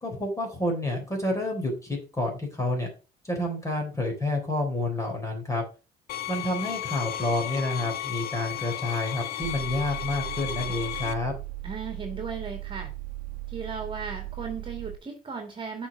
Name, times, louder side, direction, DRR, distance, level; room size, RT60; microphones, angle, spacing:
voice 1, 0.0-2.9 3.2-5.6 6.3-11.3, left 2 dB, 20° left, 2 dB, 3.7 m, -29 dB
sound 1, 6.1-11.1, left 12 dB, 65° left, 0.9 m, -34 dB
sound 2, 9.4-15.0, right 17 dB, 60° right, 1.3 m, -37 dB
voice 2, 11.6-12.9 13.5-15.9, right 5 dB, 30° right, 3 dB, 2.2 m, -36 dB
7.1 x 4.8 x 6.0 m, 0.33 s
cardioid pair, 110°, 17 cm